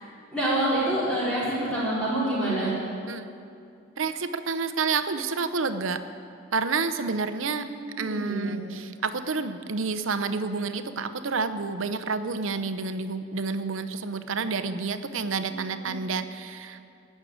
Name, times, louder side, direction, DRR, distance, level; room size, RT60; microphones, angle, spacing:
voice 1, 0.3-2.8 7.5-8.6 15.4-15.9, right 1 dB, 5° left, -10 dB, 4.2 m, -27 dB
voice 2, 4.0-6.0 6.5-7.7 8.0-16.8, right 4 dB, 75° right, 11 dB, 0.7 m, -29 dB
16.0 x 6.5 x 9.2 m, 2.4 s
head